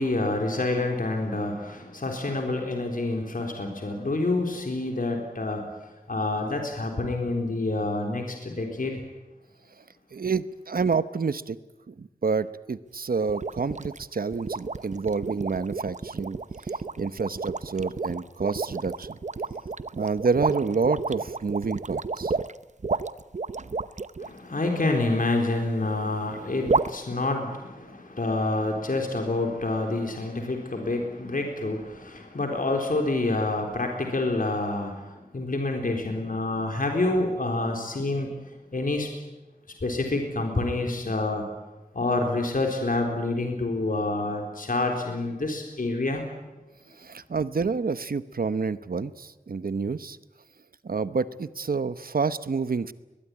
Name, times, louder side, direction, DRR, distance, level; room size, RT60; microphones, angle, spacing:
voice 1, 0.0-5.7 6.1-9.0 24.2-39.1 39.8-41.5 41.9-46.2, left 2 dB, 70° left, 2 dB, 4.1 m, -27 dB
voice 2, 10.1-11.6 11.9-16.4 16.7-19.2 19.9-22.3 47.0-50.2 50.8-52.9, right 4 dB, 80° right, 14 dB, 1.0 m, -28 dB
sound 1, 13.3-24.3 26.7-26.9, right 4 dB, 55° right, 0.8 m, -30 dB
22.0 x 21.0 x 9.8 m, 1.1 s
wide cardioid pair, 70°, 15 cm